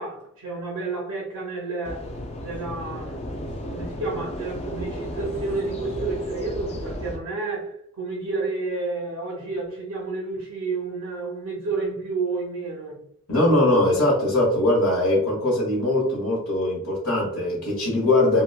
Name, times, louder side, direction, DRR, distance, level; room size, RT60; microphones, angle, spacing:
voice 1, 0.0-2.1 2.4-13.0, right 3 dB, 85° right, 0.6 m, -30 dB
sound 1, 1.8-7.2, equal, 30° left, 0.3 m, -34 dB
voice 2, 13.3-18.4, left 1 dB, 85° left, 1.2 m, -21 dB
2.9 x 2.2 x 2.2 m
head